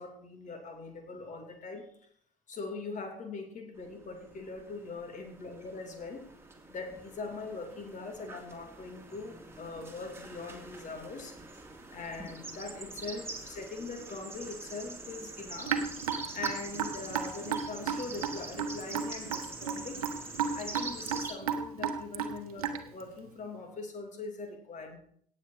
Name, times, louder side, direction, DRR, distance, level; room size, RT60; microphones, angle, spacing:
voice 1, 0.0-1.9 2.5-6.3 6.7-11.4 11.9-15.8 16.3-20.1 20.5-25.0, left 3 dB, 40° left, 4 dB, 3.0 m, -42 dB
sound 1, 3.9-21.3, right 2 dB, 15° right, 2.7 m, -45 dB
Raindrop / Drip, 15.7-23.0, right 7 dB, 75° right, 1.1 m, -33 dB
17.5 x 7.6 x 4.0 m, 0.64 s
figure-of-eight pair, 55°, 19 cm